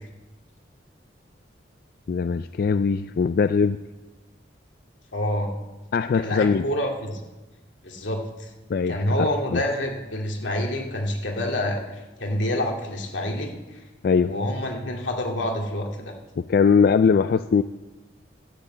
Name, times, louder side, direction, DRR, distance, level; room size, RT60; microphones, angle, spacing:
voice 1, 2.1-3.8 5.9-6.7 8.7-9.0 9.5-9.6 14.0-14.3 16.4-17.6, left 5 dB, 55° left, 12 dB, 0.3 m, -21 dB
voice 2, 5.1-5.5 6.1-7.2 7.8-8.5 8.9-13.5 14.2-16.1, left 1 dB, 85° left, 1 dB, 2.4 m, -27 dB
12.5 x 7.9 x 8.4 m, 1.1 s
head